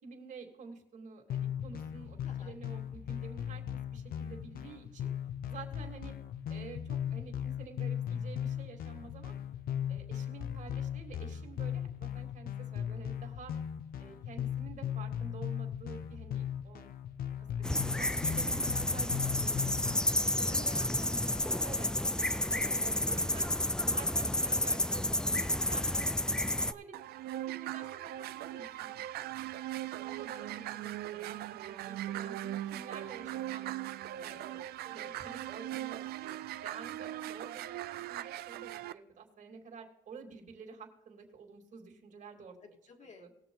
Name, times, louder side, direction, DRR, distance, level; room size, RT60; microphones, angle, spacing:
voice 1, 0.0-3.6 3.9-5.1 5.5-6.1 6.5-9.3 9.9-13.5 14.0-16.9 17.2-17.5 17.7-19.7 20.5-21.2 21.6-21.9 22.5-23.5 23.8-29.2 30.1-31.4 31.7-33.7 34.2-36.3 36.6-42.5 43.2-43.3, right 5 dB, 45° right, 3 dB, 2.4 m, -49 dB
sound 1, 1.3-20.1, left 9 dB, 60° left, 0.9 m, -38 dB
voice 2, 2.2-2.6 10.6-10.9 19.8-20.0 20.4-21.9 26.4-26.5 29.9-30.3 34.2-34.5 34.8-35.1 42.6-43.4, left 4 dB, 45° left, 3 dB, 2.1 m, -55 dB
sound 2, 17.6-26.7, left 1 dB, 5° left, 0.4 m, -31 dB
sound 3, 26.9-38.9, right 13 dB, 70° right, 0.5 m, -40 dB
19.5 x 6.8 x 3.9 m, 0.90 s
cardioid pair, 110°, 17 cm